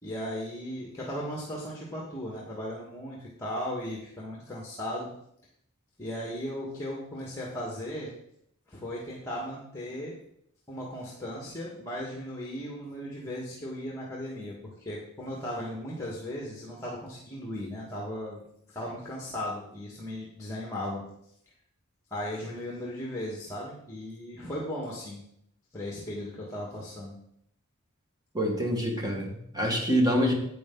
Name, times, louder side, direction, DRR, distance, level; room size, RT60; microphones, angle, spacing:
voice 1, 0.0-5.1 6.0-8.1 8.7-10.2 10.7-18.4 18.7-21.0 22.1-25.2 25.7-27.2, equal, 15° left, -3 dB, 1.8 m, -36 dB
voice 2, 28.3-30.3, equal, 20° right, 1 dB, 1.8 m, -26 dB
10.5 x 8.1 x 3.9 m, 0.72 s
head